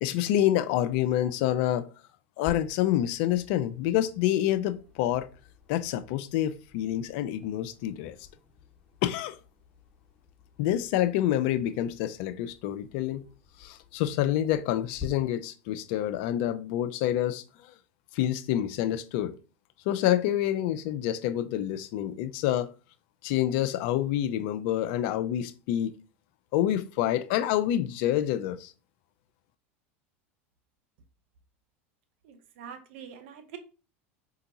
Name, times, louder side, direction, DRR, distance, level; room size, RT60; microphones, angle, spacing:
voice 1, 0.0-1.9 2.4-5.3 5.7-8.2 9.0-9.4 10.6-13.2 13.6-17.7 18.1-19.3 19.9-22.7 23.2-25.9 26.5-28.7, left 12 dB, 60° left, 0.4 m, -27 dB
sound 1, 2.4-15.1, left 6 dB, 10° left, 1.3 m, -50 dB
voice 2, 32.2-33.6, right 8 dB, 70° right, 0.6 m, -45 dB
4.3 x 2.8 x 2.7 m
hypercardioid pair, 95°, 7 cm